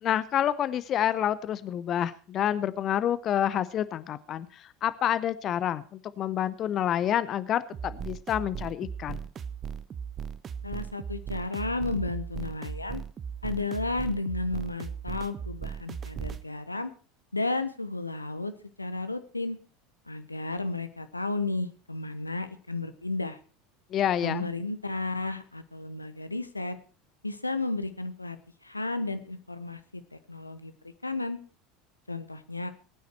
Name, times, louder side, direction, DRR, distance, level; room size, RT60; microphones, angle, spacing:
voice 1, 0.0-9.2 23.9-24.5, left 10 dB, 40° left, 16 dB, 0.7 m, -28 dB
sound 1, 7.7-16.4, right 7 dB, 30° right, 0.8 m, -37 dB
voice 2, 10.6-13.0 13.4-16.9 17.3-18.5 18.8-19.6 20.1-23.4 24.2-26.8 27.2-28.4 28.6-30.7 31.0-31.4 32.1-32.7, left 2 dB, 85° left, 11 dB, 0.9 m, -33 dB
20.0 x 9.4 x 4.5 m, 0.37 s
figure-of-eight pair, 75°, 0 cm